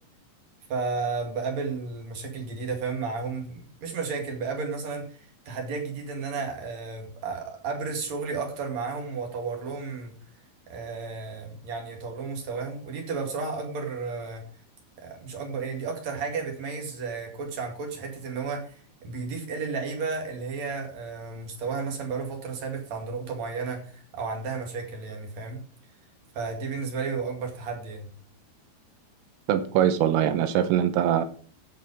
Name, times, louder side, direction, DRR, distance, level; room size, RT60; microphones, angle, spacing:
voice 1, 0.7-10.1 10.7-14.4 15.0-25.6 26.3-28.1, right 4 dB, 45° right, 2 dB, 2.5 m, -33 dB
voice 2, 29.5-31.3, right 10 dB, 80° right, 11 dB, 3.4 m, -22 dB
15.5 x 5.9 x 4.9 m, 0.43 s
omnidirectional pair, 6.0 m